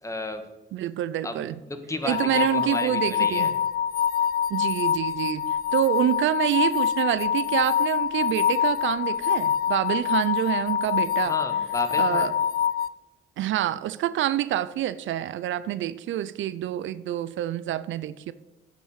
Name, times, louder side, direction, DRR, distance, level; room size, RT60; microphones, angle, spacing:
voice 1, 0.0-0.4 1.2-3.5 11.2-12.3, left 1 dB, 15° left, 8 dB, 1.5 m, -33 dB
voice 2, 0.7-1.6 2.0-3.5 4.5-11.4 12.0-12.3 13.4-18.3, right 12 dB, 75° right, 16 dB, 0.5 m, -27 dB
sound 1, 2.0-12.9, left 8 dB, 50° left, 0.4 m, -25 dB
8.9 x 6.1 x 8.0 m, 1.1 s
cardioid pair, 90°, 20 cm